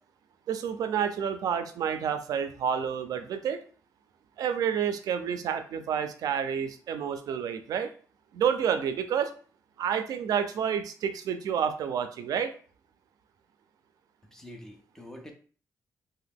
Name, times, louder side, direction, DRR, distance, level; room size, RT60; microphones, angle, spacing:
voice 1, 0.5-3.6 4.4-7.9 8.3-9.3 9.8-12.5, right 8 dB, 75° right, 9 dB, 0.3 m, -29 dB
voice 2, 14.3-15.3, left 1 dB, 5° left, 3 dB, 0.5 m, -46 dB
2.8 x 2.1 x 3.4 m, 0.41 s
wide cardioid pair, 155°, 6 cm